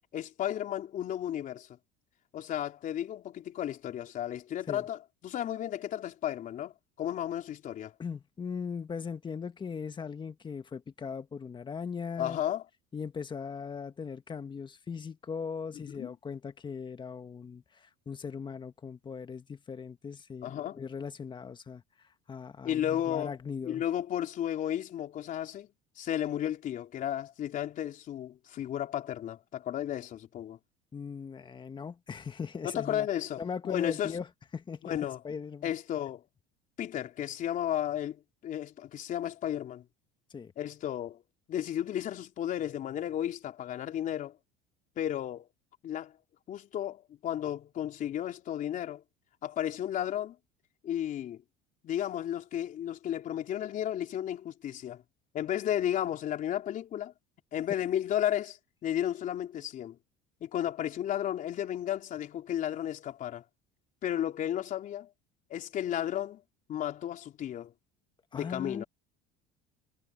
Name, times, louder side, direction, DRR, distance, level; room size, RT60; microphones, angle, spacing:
voice 1, 0.1-1.7 2.3-6.7 7.0-7.9 12.2-12.6 16.0-16.1 20.4-20.8 22.6-23.3 23.6-25.7 26.0-30.6 32.6-34.1 34.9-35.2 35.6-36.2 36.8-39.8 40.6-41.2 41.5-44.4 45.0-45.5 45.8-46.1 46.5-49.0 49.4-50.4 50.8-51.4 51.8-55.0 55.3-57.1 57.5-60.0 60.4-63.4 64.0-65.1 65.5-66.4 66.7-67.7 68.3-68.8, left 11 dB, 50° left, 3.7 m, -33 dB
voice 2, 8.0-12.4 12.9-23.8 30.9-33.1 33.4-34.3 34.5-35.0 35.2-35.7 40.3-40.5 68.3-68.8, left 6 dB, 25° left, 1.7 m, -39 dB
supercardioid pair, 105°, 18 cm